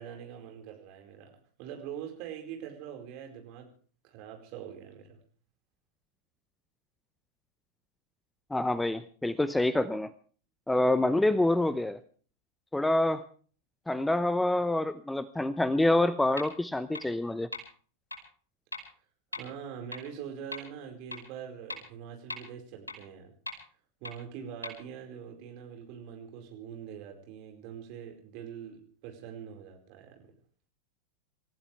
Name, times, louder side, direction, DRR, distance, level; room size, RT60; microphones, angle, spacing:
voice 1, 0.0-3.7 4.0-5.2 19.3-23.3 24.0-30.3, right 8 dB, 45° right, 3 dB, 4.7 m, -43 dB
voice 2, 8.5-10.1 10.7-12.0 12.7-13.2 13.9-17.5, left 1 dB, 5° left, 16 dB, 0.7 m, -26 dB
sound 1, 16.4-16.5 16.9-17.0 17.5-17.6 18.1-18.2 18.7-18.8 19.3-19.4 19.9-20.0 20.5-20.6 21.1-21.2 21.7-21.8 22.3-22.4 22.9-23.0 23.5-23.6 24.0-24.1 24.6-24.7, left 2 dB, 80° left, 5.5 m, -37 dB
28.0 x 15.0 x 3.4 m, 0.43 s
figure-of-eight pair, 90°, 0 cm